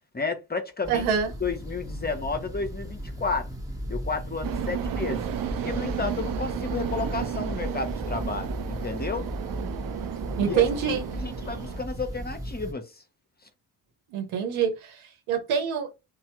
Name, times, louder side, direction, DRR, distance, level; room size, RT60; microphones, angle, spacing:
voice 1, 0.1-1.1 1.4-3.5 3.9-5.3 5.6-9.3 10.4-10.6 11.2-13.0, left 4 dB, 20° left, 0.7 m, -32 dB
sound 1, 0.8-12.7, equal, 5° right, 0.9 m, -36 dB
voice 2, 0.9-1.3 10.4-11.0 14.1-15.9, right 7 dB, 80° right, 0.9 m, -26 dB
sound 2, 4.4-11.8, right 10 dB, 45° right, 0.5 m, -33 dB
3.1 x 2.0 x 2.9 m
hypercardioid pair, 40°, 49 cm